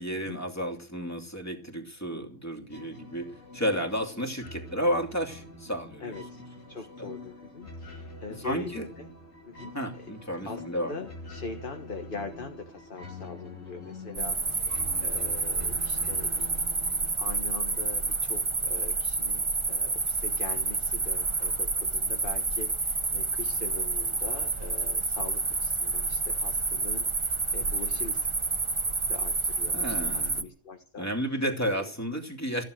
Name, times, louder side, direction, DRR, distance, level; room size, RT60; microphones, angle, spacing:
voice 1, 0.0-3.3 3.5-6.2 7.0-7.1 8.4-8.9 9.7-10.9 29.7-30.4 31.0-32.6, equal, 10° left, 3 dB, 2.8 m, -32 dB
sound 1, 2.7-18.2, left 2 dB, 80° left, 3.4 m, -46 dB
voice 2, 6.0-6.4 6.7-9.1 9.4-10.1 10.4-16.8 17.2-28.3 29.1-31.9, left 4 dB, 45° left, 4 dB, 1.7 m, -42 dB
sound 2, 14.1-30.4, right 3 dB, 25° right, 1.1 m, -29 dB
15.0 x 11.0 x 6.5 m, 0.38 s
omnidirectional pair, 1.3 m